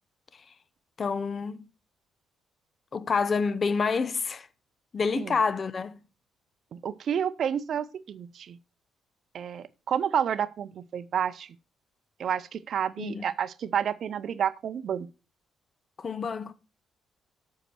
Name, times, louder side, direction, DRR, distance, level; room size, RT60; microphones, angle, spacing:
voice 1, 1.0-1.6 2.9-4.5 4.9-5.9 13.0-13.2 16.0-16.5, left 5 dB, 45° left, 0.8 m, -28 dB
voice 2, 6.7-8.6 9.3-11.6 12.2-15.1, right 8 dB, 60° right, 0.5 m, -30 dB
8.0 x 5.6 x 6.1 m
hypercardioid pair, 50°, 0 cm